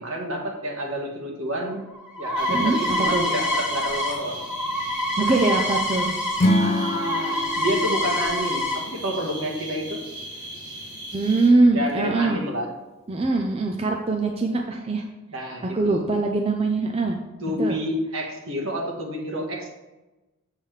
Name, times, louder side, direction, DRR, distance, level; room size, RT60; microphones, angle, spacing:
voice 1, 0.0-1.8 2.2-4.4 6.6-10.0 11.7-12.7 15.3-16.0 17.4-19.7, equal, 65° right, 1 dB, 1.5 m, -29 dB
sound 1, 1.7-6.5 6.7-8.8, left 1 dB, 5° right, 1.7 m, -26 dB
sound 2, 2.3-11.5, right 1 dB, 85° right, 2.3 m, -38 dB
voice 2, 2.5-3.3 5.2-6.1 6.4-6.6 11.1-12.4 13.1-15.0 15.7-17.2 17.6-17.8, right 3 dB, 25° right, 2 dB, 0.5 m, -22 dB
Acoustic guitar / Strum, 6.4-9.7, left 1 dB, 30° left, 0.5 m, -26 dB
7.4 x 7.1 x 3.3 m, 1.1 s
head